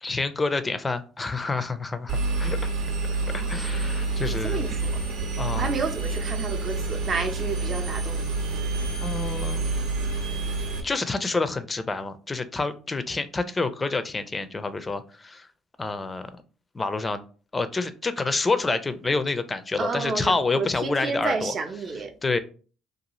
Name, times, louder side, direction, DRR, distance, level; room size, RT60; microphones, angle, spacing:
voice 1, 0.0-2.6 3.3-4.6 5.4-5.7 9.0-9.6 10.8-15.5 15.8-16.2 16.7-17.2 17.5-21.5 22.2-22.4, left 3 dB, 25° left, 0.4 m, -28 dB
Engine, 2.1-10.8, right 3 dB, 80° right, 0.8 m, -28 dB
voice 2, 3.2-3.8 4.3-5.0 5.5-8.3 19.8-22.1, right 4 dB, 45° right, 0.6 m, -31 dB
2.6 x 2.3 x 3.0 m
supercardioid pair, 75°, 0 cm